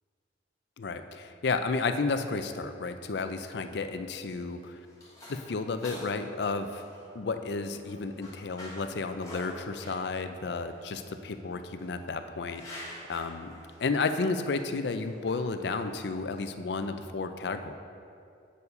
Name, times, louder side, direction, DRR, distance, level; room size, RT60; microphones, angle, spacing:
voice 1, 0.8-4.8 5.3-6.8 7.1-12.6 13.1-13.5 13.8-17.8, left 4 dB, 70° left, 9 dB, 0.4 m, -32 dB
sound 1, 4.3-16.6, left 1 dB, 20° left, 1.4 m, -49 dB
8.2 x 4.7 x 5.3 m, 2.5 s
head